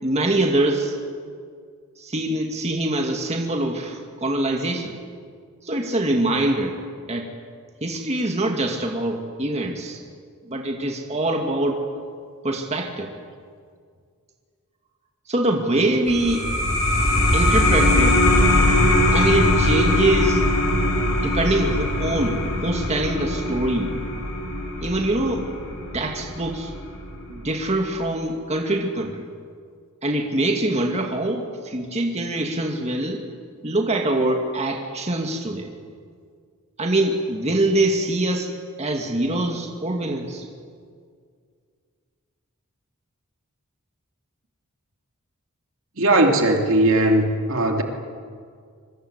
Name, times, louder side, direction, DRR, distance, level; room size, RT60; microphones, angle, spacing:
voice 1, 0.0-0.9 2.0-4.9 5.6-6.7 7.1-7.3 7.8-10.0 10.4-11.8 12.4-13.1 15.3-16.5 17.3-18.2 19.1-20.4 21.1-23.9 24.8-25.5 25.9-26.7 27.3-29.2 30.0-33.2 33.6-35.7 36.8-38.5 38.8-40.5, right 1 dB, 30° right, 2 dB, 2.3 m, -24 dB
sound 1, 16.1-27.2, left 1 dB, 60° left, 4.6 m, -21 dB
voice 2, 46.0-47.8, right 1 dB, 65° right, 3 dB, 2.9 m, -18 dB
25.5 x 24.0 x 8.3 m, 2.1 s
head